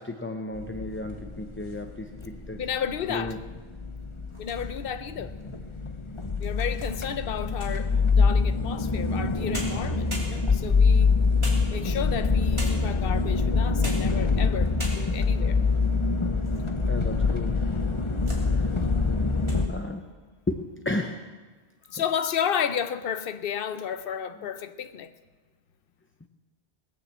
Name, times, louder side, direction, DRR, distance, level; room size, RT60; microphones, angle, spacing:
voice 1, 0.0-2.6 3.1-3.4 16.9-17.7 18.5-18.7 19.7-20.0 20.5-21.2 21.9-22.0, left 2 dB, 15° left, 0.5 m, -33 dB
sound 1, 0.5-19.7, left 4 dB, 30° left, 0.9 m, -25 dB
voice 2, 2.6-3.4 4.4-5.3 6.4-11.2 11.7-15.6 21.9-25.1, left 8 dB, 65° left, 0.9 m, -32 dB
sound 2, 4.2-5.0 5.6-5.7 6.2-7.9 9.2-9.3 9.5-10.7 11.4-12.1 12.6-13.0 13.6-14.2 14.5-14.6 14.8-15.3 15.9-16.7 17.0-17.1 17.8-18.5 18.8-19.1 19.4-19.7, equal, 30° right, 2.9 m, -40 dB
19.5 x 7.0 x 7.4 m
omnidirectional pair, 1.0 m